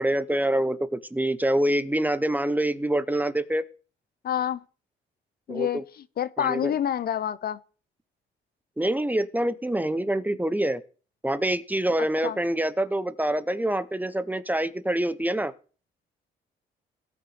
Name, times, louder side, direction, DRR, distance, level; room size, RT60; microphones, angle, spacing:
voice 1, 0.0-3.6 5.5-5.8 6.4-6.7 8.8-10.8 11.2-15.5, right 1 dB, 10° right, 0.6 m, -26 dB
voice 2, 4.2-4.6 5.5-5.8 6.2-7.6 12.2-12.4, left 10 dB, 50° left, 0.5 m, -27 dB
17.5 x 6.7 x 3.2 m
cardioid pair, 90°, 20 cm